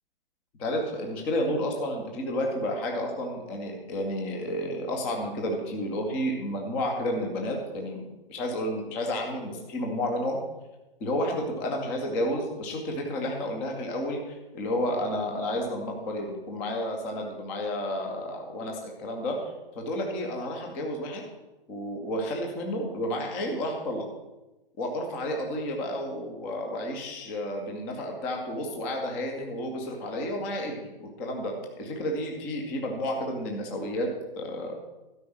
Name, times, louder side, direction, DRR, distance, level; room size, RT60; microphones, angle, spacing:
voice 1, 0.6-8.0 8.3-10.4 11.0-21.2 21.7-24.1 24.8-34.7, left 1 dB, 5° left, 1 dB, 0.3 m, -31 dB
12.0 x 5.2 x 7.1 m, 1.1 s
hypercardioid pair, 135°, 29 cm